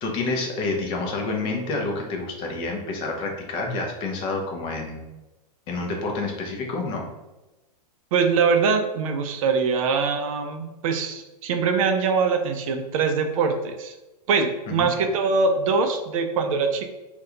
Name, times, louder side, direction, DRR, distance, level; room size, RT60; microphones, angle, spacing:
voice 1, 0.0-5.0 5.7-7.0 14.7-14.9, left 3 dB, 25° left, 1 dB, 0.4 m, -28 dB
voice 2, 8.1-13.9 14.3-16.8, right 5 dB, 55° right, 6 dB, 0.4 m, -23 dB
2.7 x 2.2 x 3.6 m, 1.1 s
supercardioid pair, 150°, 21 cm